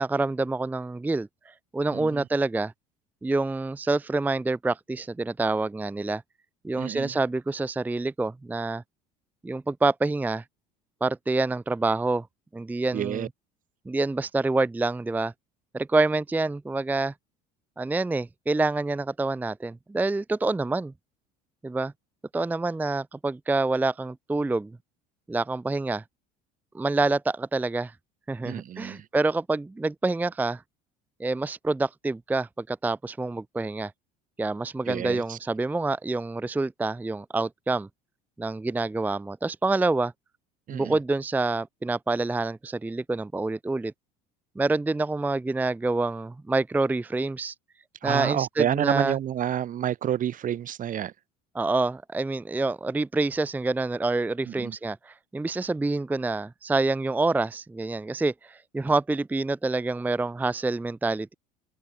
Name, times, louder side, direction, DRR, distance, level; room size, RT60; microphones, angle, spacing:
voice 1, 0.0-2.7 3.2-6.2 6.6-8.8 9.4-10.4 11.0-12.3 12.5-13.3 13.9-15.3 15.7-17.1 17.8-20.9 21.6-21.9 22.3-24.8 25.3-26.0 26.7-27.9 28.3-30.6 31.2-33.9 34.4-37.9 38.4-40.1 40.7-43.9 44.6-47.5 48.0-49.2 51.5-61.3, right 3 dB, 10° right, 0.5 m, -27 dB
voice 2, 1.9-2.2 6.8-7.1 12.9-13.3 28.4-29.0 34.9-35.4 40.7-41.0 48.0-51.1 54.5-54.7, right 10 dB, 45° right, 1.0 m, -29 dB
open air
supercardioid pair, 80°, 19 cm